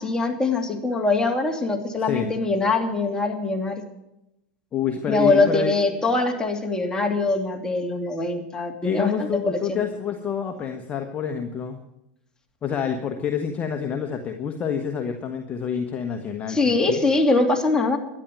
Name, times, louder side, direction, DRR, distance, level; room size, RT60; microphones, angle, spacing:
voice 1, 0.0-3.8 5.1-9.8 16.5-18.0, left 3 dB, 15° left, 2 dB, 2.7 m, -23 dB
voice 2, 4.7-6.0 8.8-11.8 12.6-17.0, left 7 dB, 30° left, 5 dB, 1.3 m, -28 dB
12.5 x 10.5 x 9.1 m, 0.88 s
hypercardioid pair, 100°, 5 cm